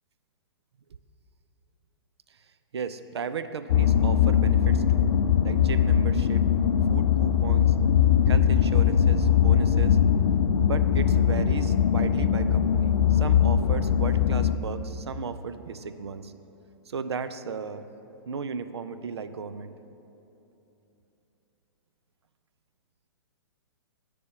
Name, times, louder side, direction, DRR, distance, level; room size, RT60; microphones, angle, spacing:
voice 1, 2.7-5.1 5.4-6.5 6.9-7.7 8.3-10.0 10.6-16.3 16.9-17.8 18.3-19.7, right 5 dB, 85° right, 11 dB, 0.4 m, -35 dB
sound 1, 3.7-14.6, left 8 dB, 80° left, 0.4 m, -21 dB
9.5 x 3.4 x 6.8 m, 2.9 s
hypercardioid pair, 120°, 13 cm